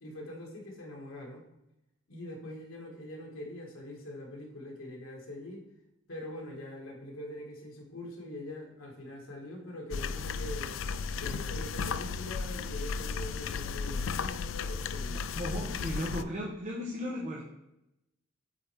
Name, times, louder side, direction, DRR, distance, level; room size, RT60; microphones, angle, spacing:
voice 1, 0.0-1.5 2.1-5.7 6.1-10.8 11.2-15.2, left 1 dB, 90° left, 0 dB, 1.9 m, -43 dB
sound 1, 9.9-16.2, left 5 dB, 70° left, 0.4 m, -34 dB
voice 2, 15.2-17.4, equal, 35° right, -1 dB, 0.9 m, -36 dB
8.6 x 4.2 x 3.5 m, 0.87 s
head